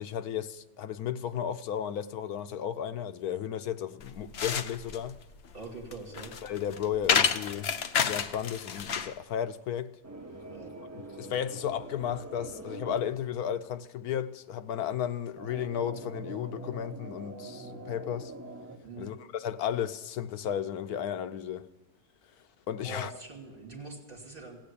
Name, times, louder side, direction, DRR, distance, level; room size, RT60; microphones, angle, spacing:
voice 1, 0.0-5.2 6.4-7.7 8.1-10.0 11.2-18.3 19.0-21.7 22.7-23.1, left 9 dB, 75° left, 1.2 m, -34 dB
sound 1, 4.0-9.2, left 7 dB, 55° left, 0.8 m, -30 dB
voice 2, 5.5-6.3 10.5-10.7 18.8-19.1 22.8-24.6, right 2 dB, 35° right, 3.0 m, -43 dB
sound 2, 10.0-13.0 15.4-18.8, right 2 dB, 10° right, 1.4 m, -44 dB
16.0 x 8.8 x 8.4 m
omnidirectional pair, 1.6 m